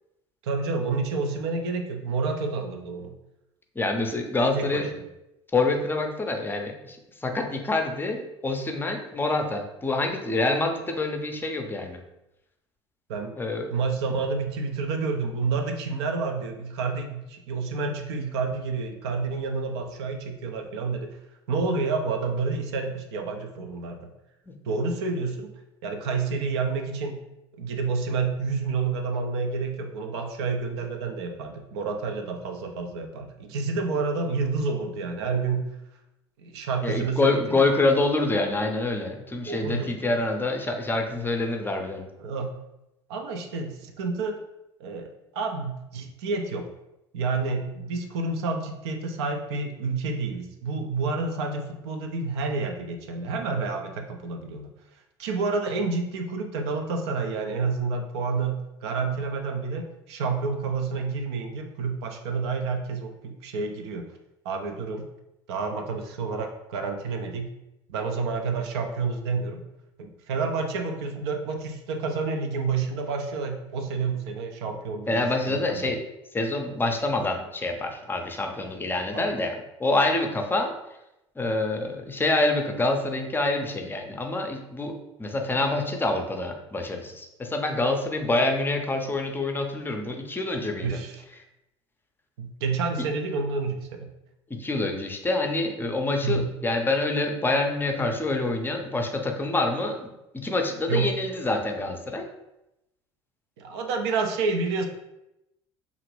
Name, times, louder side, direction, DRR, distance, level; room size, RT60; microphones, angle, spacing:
voice 1, 0.4-3.1 4.5-4.9 13.1-13.3 13.7-21.2 21.5-24.1 24.7-25.5 25.8-27.2 27.6-35.7 36.4-37.7 39.5-39.9 42.2-42.5 43.1-44.4 44.8-46.7 47.1-54.7 55.2-64.1 64.4-65.1 65.5-67.5 67.9-69.6 70.0-75.9 79.1-79.2 90.8-91.2 92.4-94.1 96.2-96.5 100.9-101.1 103.6-104.9, right 4 dB, 75° right, 4 dB, 0.5 m, -29 dB
voice 2, 3.8-4.9 5.5-12.0 13.4-13.7 24.5-24.6 36.8-42.1 75.1-76.0 76.3-80.7 81.4-84.9 85.2-91.0 94.5-100.1 100.3-102.3, left 2 dB, 15° left, 4 dB, 0.5 m, -26 dB
2.8 x 2.5 x 3.1 m, 0.90 s
hypercardioid pair, 70°, 14 cm